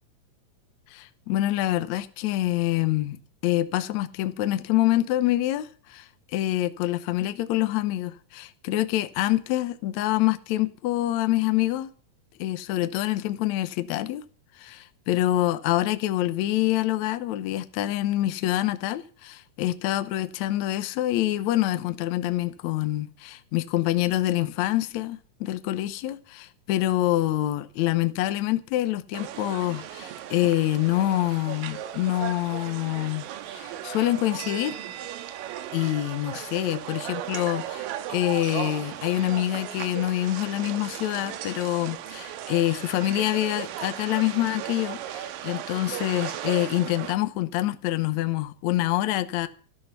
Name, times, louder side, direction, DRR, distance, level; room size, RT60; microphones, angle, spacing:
voice 1, 0.9-3.2 3.4-11.9 12.4-14.2 14.6-33.3 33.5-34.8 35.7-49.5, left 15 dB, 70° left, 1.9 m, -26 dB
sound 1, 29.1-47.1, right 11 dB, 80° right, 2.7 m, -36 dB
14.0 x 12.5 x 5.5 m
omnidirectional pair, 4.0 m